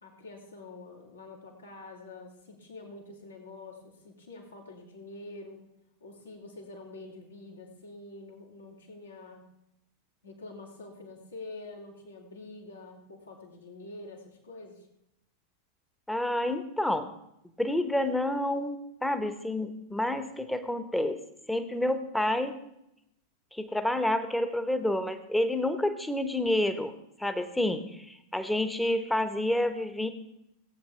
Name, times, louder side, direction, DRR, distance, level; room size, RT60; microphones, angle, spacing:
voice 1, 0.0-5.7 6.0-9.5 10.2-14.9, left 2 dB, 75° left, -1 dB, 2.6 m, -46 dB
voice 2, 16.1-17.1 17.6-21.2 21.5-22.6 23.5-30.1, left 1 dB, 5° left, 10 dB, 1.0 m, -29 dB
18.0 x 8.7 x 3.4 m, 0.82 s
figure-of-eight pair, 90°, 0 cm